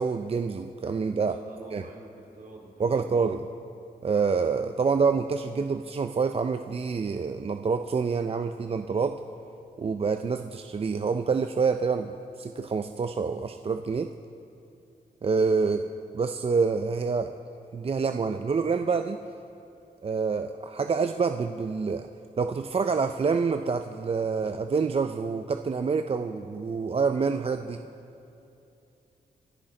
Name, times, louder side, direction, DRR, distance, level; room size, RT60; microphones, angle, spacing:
voice 1, 0.0-1.4 1.7-1.8 2.8-3.4 4.0-9.2 9.8-14.1 15.2-15.8 16.1-17.3 17.7-19.2 20.0-22.1 22.4-27.8, right 5 dB, 35° right, 8 dB, 0.4 m, -27 dB
voice 2, 1.2-3.4 15.6-15.9, right 2 dB, 65° right, -1 dB, 2.7 m, -47 dB
24.5 x 10.0 x 3.9 m, 2.8 s
cardioid pair, 85°, 17 cm